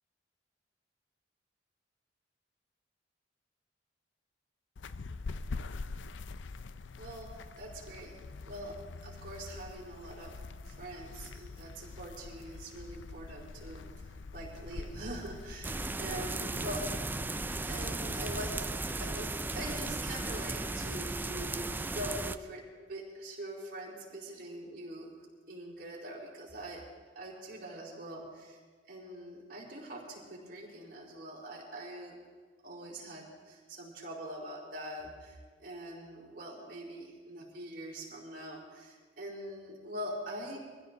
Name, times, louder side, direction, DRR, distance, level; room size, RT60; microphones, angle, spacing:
sound 1, 4.8-18.6, left 3 dB, 85° left, 0.5 m, -45 dB
voice 1, 6.9-8.2 8.5-8.8 9.0-10.3 10.7-16.9 17.6-18.7 19.0-22.6 22.9-25.1 25.5-26.8 27.1-28.6 28.9-32.2 32.6-40.6, right 1 dB, 50° right, -3 dB, 4.5 m, -43 dB
sound 2, 15.6-22.4, right 2 dB, 10° right, 0.4 m, -36 dB
23.5 x 15.5 x 4.0 m, 1.5 s
head